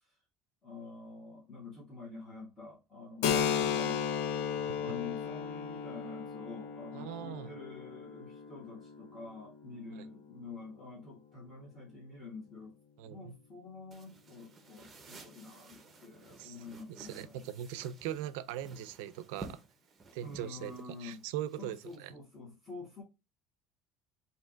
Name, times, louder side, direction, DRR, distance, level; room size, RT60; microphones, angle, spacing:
voice 1, 0.6-4.1 4.8-12.8 13.0-17.5 20.2-21.2 21.6-23.0, left 3 dB, 20° left, 1.6 m, -47 dB
Keyboard (musical), 3.2-10.6, left 8 dB, 90° left, 0.5 m, -35 dB
voice 2, 6.9-7.5 10.0-10.1 13.0-13.4 16.4-16.6 17.0-19.6 20.1-20.7 21.0-22.1, right 11 dB, 85° right, 0.4 m, -40 dB
sound 1, 13.9-22.0, right 3 dB, 20° right, 0.7 m, -53 dB
3.3 x 2.7 x 3.8 m
cardioid pair, 145°, 0 cm